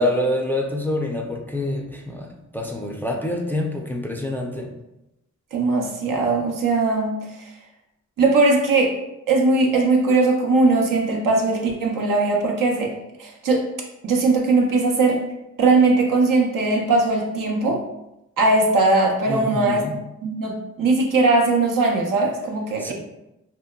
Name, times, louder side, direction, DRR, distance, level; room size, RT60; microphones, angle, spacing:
voice 1, 0.0-4.7 19.3-20.0 22.8-22.9, left 1 dB, 5° left, 1 dB, 0.3 m, -26 dB
voice 2, 5.5-7.5 8.2-9.0 9.3-12.9 13.2-13.6 14.0-15.3 15.6-17.8 18.4-19.8 20.2-22.9, right 3 dB, 80° right, 0 dB, 0.5 m, -19 dB
2.8 x 2.1 x 2.2 m, 0.89 s
cardioid pair, 55°, 32 cm